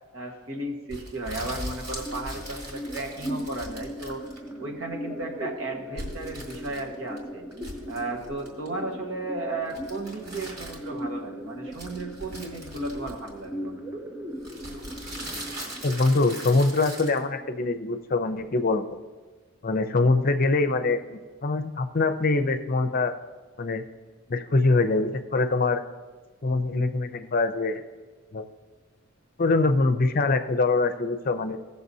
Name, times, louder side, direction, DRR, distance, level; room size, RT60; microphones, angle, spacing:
voice 1, 0.1-4.2 4.6-7.4 7.9-13.8, right 2 dB, 75° right, 1 dB, 1.3 m, -34 dB
sound 1, 0.9-4.6 6.0-7.2 7.5-8.7 9.7-11.0 11.7-13.5 14.4-17.2, equal, 50° right, 2.2 m, -40 dB
sound 2, 1.9-17.9, equal, 10° right, 0.5 m, -39 dB
voice 2, 15.8-18.8 19.6-23.1 23.6-23.8 24.3-25.8 26.4-27.8 28.3-28.5 29.4-31.6, left 3 dB, 45° left, 9 dB, 0.6 m, -24 dB
17.0 x 6.7 x 2.7 m, 1.3 s
head